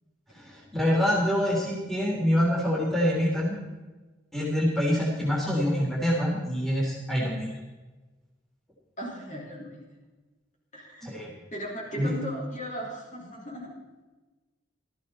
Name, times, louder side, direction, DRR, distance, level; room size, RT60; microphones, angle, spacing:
voice 1, 0.3-3.6 4.3-7.5 11.0-11.3 11.9-12.1, equal, ahead, -4 dB, 3.6 m, -26 dB
voice 2, 9.0-9.7 10.7-11.1 11.5-13.7, equal, 40° left, -3 dB, 5.0 m, -36 dB
18.0 x 14.0 x 4.3 m, 1.2 s
head